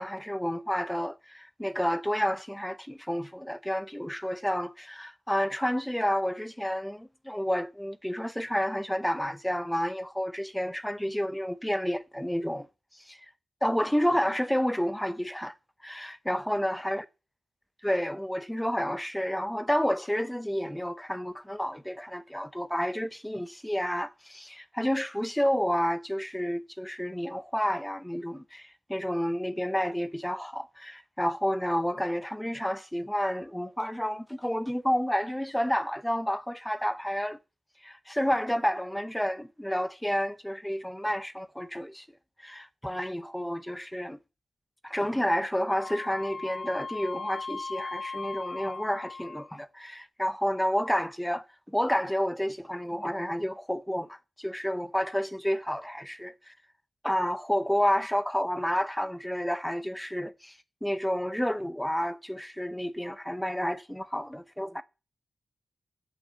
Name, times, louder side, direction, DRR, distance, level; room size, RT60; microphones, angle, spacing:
voice 1, 0.0-12.7 12.9-13.2 13.6-15.6 15.8-17.0 17.8-37.4 37.8-42.1 42.4-44.2 44.8-56.5 57.0-64.8, equal, 5° left, 0.9 m, -30 dB
Wind instrument woodwind instrument, 45.7-49.6, left 4 dB, 55° left, 1.3 m, -38 dB
8.2 x 7.9 x 7.5 m
cardioid pair, 85°, 0 cm